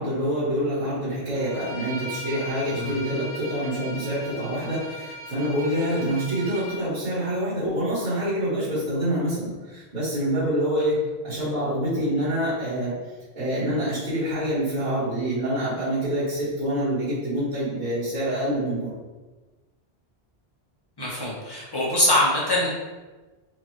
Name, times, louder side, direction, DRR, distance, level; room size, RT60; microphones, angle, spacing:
voice 1, 0.0-12.9 13.3-18.9, equal, 45° right, -14 dB, 1.7 m, -26 dB
Bowed string instrument, 1.3-6.8, equal, 65° right, 0.9 m, -38 dB
voice 2, 21.0-22.7, left 1 dB, 25° left, -5 dB, 0.9 m, -23 dB
4.6 x 2.4 x 3.1 m, 1.2 s
omnidirectional pair, 1.0 m